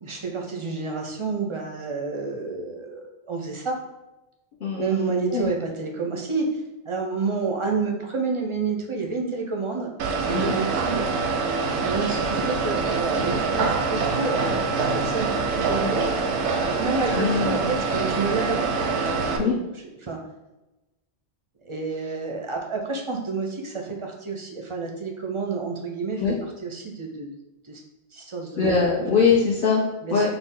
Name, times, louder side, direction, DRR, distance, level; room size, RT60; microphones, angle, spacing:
voice 1, 0.0-3.8 4.8-9.9 10.2-11.0 11.8-16.1 16.6-18.7 19.0-19.5 20.0-20.2 21.6-26.2 26.6-27.3 27.6-27.8 28.1-28.7 30.0-30.3, right 4 dB, 40° right, 1 dB, 0.5 m, -29 dB
voice 2, 4.6-5.5 10.3-10.6 15.8-16.0 17.1-17.7 19.2-19.5 26.2-26.4 28.6-29.8 30.1-30.3, left 5 dB, 55° left, -6 dB, 0.9 m, -23 dB
sound 1, 10.0-19.4, right 4 dB, 90° right, 0.9 m, -25 dB
5.7 x 2.0 x 3.6 m, 1.0 s
omnidirectional pair, 1.1 m